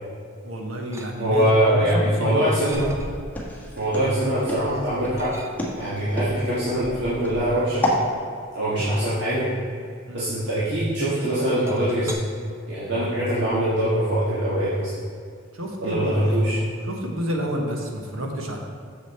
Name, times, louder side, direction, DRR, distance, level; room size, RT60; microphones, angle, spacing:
voice 1, 0.4-2.5 5.9-6.0 10.1-10.2 15.5-16.5 16.9-18.7, equal, 80° right, 2 dB, 1.3 m, -30 dB
sound 1, 0.9-1.6 2.0-3.3 3.8-4.5 5.1-6.0 6.8-10.9 11.3-12.1, right 1 dB, 15° right, 0.7 m, -41 dB
voice 2, 1.2-2.9 3.8-5.4 5.8-7.8 8.5-9.5 10.1-12.1 12.7-14.9 15.8-16.6, right 1 dB, 60° right, -10 dB, 1.8 m, -23 dB
Walk footsteps, 2.7-8.0, left 1 dB, 10° left, 1.5 m, -29 dB
7.3 x 6.8 x 4.4 m, 2.3 s
head